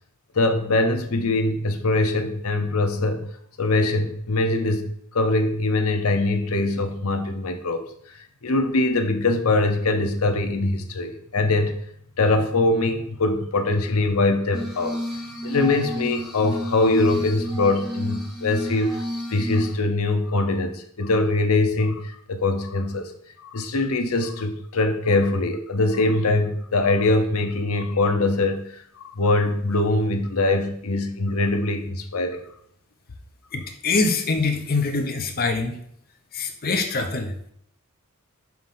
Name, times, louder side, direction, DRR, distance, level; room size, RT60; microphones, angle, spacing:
voice 1, 0.3-3.3 3.6-11.7 12.2-15.0 15.4-19.0 19.3-23.1 23.4-32.4, left 2 dB, 75° left, 6 dB, 0.8 m, -23 dB
Glass, 14.5-19.7, equal, ahead, 1.4 m, -31 dB
voice 2, 33.5-35.8 36.3-37.5, left 3 dB, 45° left, 4 dB, 0.8 m, -24 dB
5.9 x 3.1 x 5.5 m, 0.67 s
head